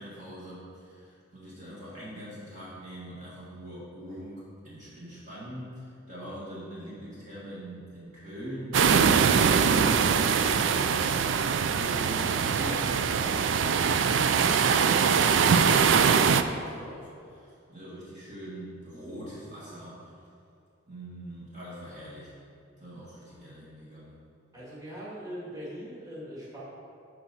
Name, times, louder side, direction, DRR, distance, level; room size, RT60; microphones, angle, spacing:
voice 1, 0.0-20.2 20.9-22.3 22.8-24.2, equal, 40° right, -8 dB, 2.0 m, -42 dB
sound 1, 8.7-16.4, right 6 dB, 65° right, 0.4 m, -22 dB
voice 2, 24.5-26.6, equal, 20° right, -8 dB, 2.2 m, -40 dB
12.0 x 5.0 x 4.2 m, 2.5 s
head